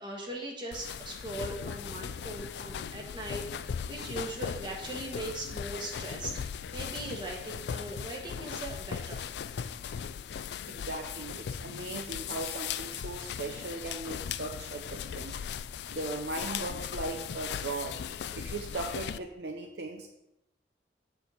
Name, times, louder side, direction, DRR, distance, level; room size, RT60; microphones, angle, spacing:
voice 1, 0.0-9.3, right 1 dB, 25° right, -1 dB, 1.6 m, -40 dB
sound 1, 0.7-19.2, left 8 dB, 65° left, 0.3 m, -38 dB
voice 2, 10.7-15.4 15.9-18.0 18.3-20.1, right 3 dB, 60° right, 3 dB, 0.7 m, -38 dB
8.1 x 4.6 x 7.0 m, 0.88 s
head